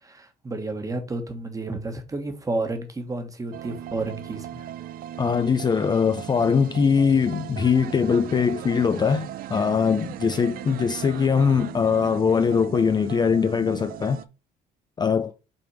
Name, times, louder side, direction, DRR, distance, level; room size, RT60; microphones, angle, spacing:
voice 1, 0.0-4.7, right 2 dB, 20° right, 1.4 m, -31 dB
sound 1, 3.5-14.2, right 11 dB, 60° right, 0.5 m, -38 dB
voice 2, 5.2-14.2 15.0-15.3, left 6 dB, 25° left, 0.4 m, -22 dB
5.9 x 3.5 x 4.6 m
cardioid pair, 110°, 17 cm